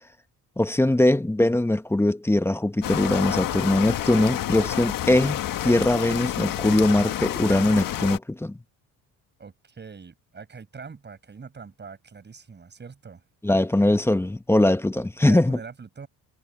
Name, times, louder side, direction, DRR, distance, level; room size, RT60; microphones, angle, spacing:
voice 1, 0.6-8.6 13.4-15.6, left 1 dB, 5° left, 1.0 m, -21 dB
sound 1, 2.8-8.2, left 12 dB, 60° left, 1.6 m, -29 dB
voice 2, 9.4-13.2 15.0-16.1, right 5 dB, 30° right, 6.7 m, -43 dB
cardioid pair, 120°, 37 cm